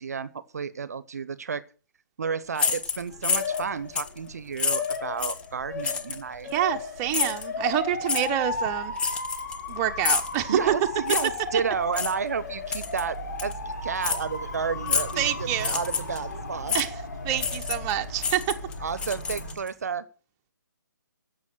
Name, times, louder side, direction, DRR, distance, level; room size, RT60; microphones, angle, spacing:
voice 1, 0.0-1.6 2.2-6.5 10.5-16.7 18.8-20.0, right 6 dB, 55° right, 0.9 m, -31 dB
sound 1, 2.6-3.6 4.0-4.2 4.6-5.5 5.8-6.2 7.1-7.5 8.1-8.3 9.0-9.7 10.0-10.4 11.1-11.4 11.9-12.1 12.7-13.0 13.4-13.5 14.0-14.2 14.9-15.2 15.6-16.2 16.7-16.9 17.4-17.9 18.2-19.7, left 6 dB, 10° left, 0.8 m, -28 dB
Motor vehicle (road) / Siren, 2.7-19.5, left 3 dB, 60° left, 5.9 m, -35 dB
voice 2, 6.4-9.0 9.7-10.7 15.2-15.8 16.7-16.9 17.2-18.6, right 11 dB, 20° right, 1.0 m, -27 dB
13.5 x 7.1 x 6.7 m
figure-of-eight pair, 140°, 10 cm